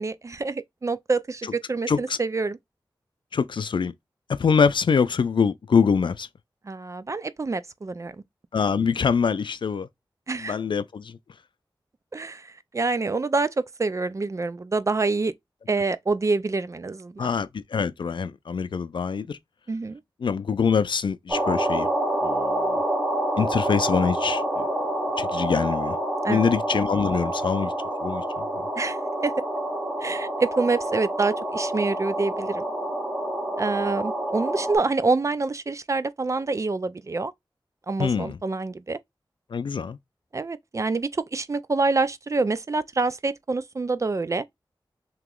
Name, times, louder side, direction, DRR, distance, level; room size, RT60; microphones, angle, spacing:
voice 1, 0.0-2.6 6.7-8.2 10.3-10.5 12.1-15.3 15.7-17.3 19.7-20.0 26.2-26.5 28.8-29.0 29.2-29.3 30.0-32.6 33.6-37.3 37.9-39.0 40.3-44.4, right 3 dB, 40° right, 0.3 m, -26 dB
voice 2, 1.9-2.2 3.3-3.9 4.3-6.3 8.5-9.9 10.4-11.2 17.2-19.4 20.2-21.9 22.2-22.8 23.4-24.7 25.2-26.0 26.3-27.7 28.0-28.4 38.0-38.4 39.5-40.0, left 6 dB, 70° left, 0.4 m, -24 dB
sound 1, 21.3-34.8, right 1 dB, 15° right, 1.2 m, -27 dB
3.0 x 2.9 x 3.6 m
wide cardioid pair, 90°, 8 cm